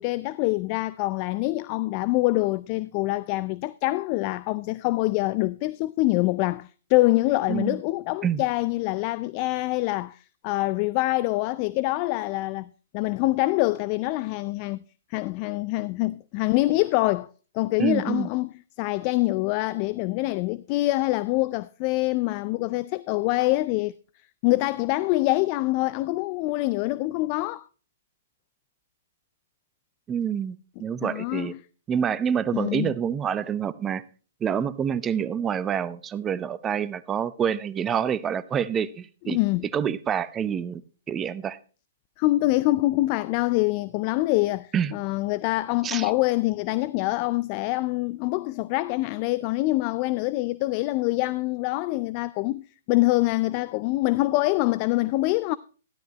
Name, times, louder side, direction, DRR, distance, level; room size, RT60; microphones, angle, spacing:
voice 1, 0.0-14.8 15.1-17.3 17.5-18.5 18.8-23.9 24.4-27.6 31.0-31.6 32.5-32.9 39.2-39.7 42.2-55.6, left 19 dB, 40° left, 0.4 m, -25 dB
voice 2, 7.5-7.8 8.2-8.4 17.8-18.3 30.1-31.5 31.9-34.0 34.4-39.4 39.7-40.8 41.1-41.6 44.7-44.9 45.8-46.1, right 8 dB, 20° right, 0.7 m, -27 dB
13.0 x 11.5 x 2.9 m
figure-of-eight pair, 120°, 0 cm